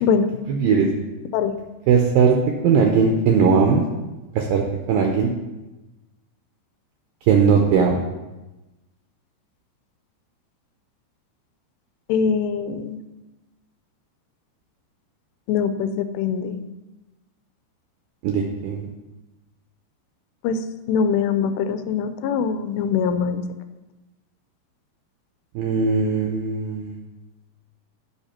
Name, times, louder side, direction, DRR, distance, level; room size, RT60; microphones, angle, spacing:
voice 1, 0.5-0.9 1.9-2.4 2.6-3.8 4.4-5.3 7.3-8.0 18.2-18.9 25.6-27.0, right 6 dB, 80° right, 2 dB, 2.1 m, -19 dB
voice 2, 12.1-13.0 15.5-16.6 20.4-20.6 20.9-23.4, left 6 dB, 90° left, 10 dB, 2.7 m, -22 dB
10.5 x 5.8 x 4.3 m, 1.1 s
omnidirectional pair, 4.8 m